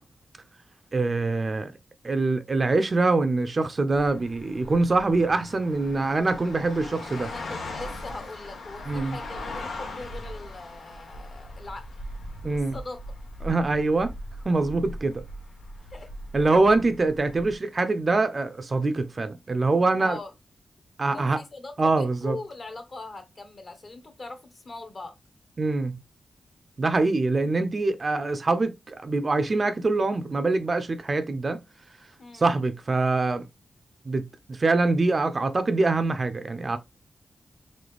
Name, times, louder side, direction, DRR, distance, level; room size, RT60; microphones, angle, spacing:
voice 1, 0.9-1.7 2.0-7.3 8.9-9.2 12.4-12.7 13.4-14.1 14.5-15.2 16.3-20.2 21.0-21.4 21.8-22.4 25.6-26.0 26.8-31.6 32.3-33.4 34.1-36.8, right 3 dB, 40° right, 0.5 m, -24 dB
sound 1, 3.9-17.6, left 1 dB, 85° left, 1.4 m, -39 dB
voice 2, 7.2-11.9 12.5-13.0 15.9-16.4 20.0-20.3 21.1-25.1 32.2-32.5, left 3 dB, 45° left, 1.2 m, -41 dB
3.9 x 3.8 x 3.3 m
wide cardioid pair, 100°, 0 cm